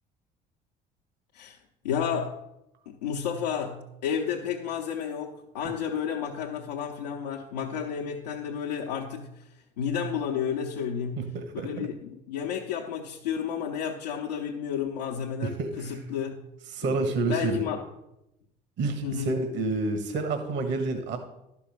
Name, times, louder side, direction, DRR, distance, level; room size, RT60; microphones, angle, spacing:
voice 1, 1.3-2.4 2.9-9.5 9.8-11.3 11.5-16.4 16.8-16.9 17.3-17.8 19.0-19.3, left 7 dB, 90° left, -1 dB, 0.8 m, -31 dB
voice 2, 11.2-11.9 15.4-16.0 16.7-17.6 18.8-21.2, right 3 dB, 60° right, 7 dB, 1.3 m, -29 dB
11.5 x 5.5 x 6.6 m, 0.88 s
hypercardioid pair, 60°, 21 cm